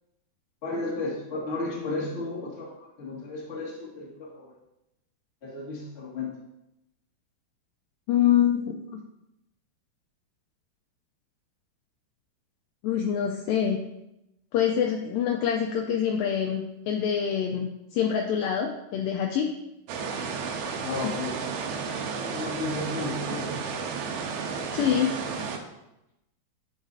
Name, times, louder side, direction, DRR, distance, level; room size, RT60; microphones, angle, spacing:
voice 1, 0.6-4.5 5.4-6.3 20.7-21.3 22.3-23.5, left 2 dB, 30° left, -6 dB, 1.2 m, -33 dB
voice 2, 8.1-9.0 12.8-13.8 14.5-19.5 21.0-21.1 24.7-25.1, left 9 dB, 90° left, 2 dB, 2.0 m, -25 dB
sound 1, 19.9-25.6, right 5 dB, 80° right, 2.6 m, -32 dB
10.0 x 6.1 x 2.7 m, 0.89 s
omnidirectional pair, 4.7 m